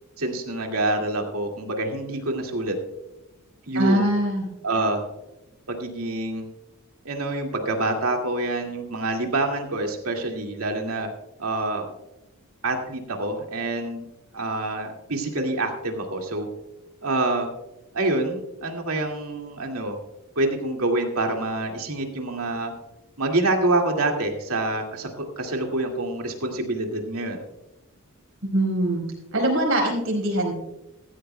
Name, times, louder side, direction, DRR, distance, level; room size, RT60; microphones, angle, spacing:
voice 1, 0.2-2.7 3.7-4.1 4.6-5.1 5.7-6.5 7.0-11.1 11.4-11.9 12.6-14.0 14.3-16.5 17.0-17.5 17.9-20.0 20.4-22.7 23.2-27.4, right 2 dB, 90° right, 2 dB, 2.2 m, -26 dB
voice 2, 3.7-4.5 28.4-29.0 29.3-30.5, right 1 dB, 65° right, 0 dB, 4.6 m, -22 dB
15.5 x 15.0 x 2.2 m, 0.93 s
head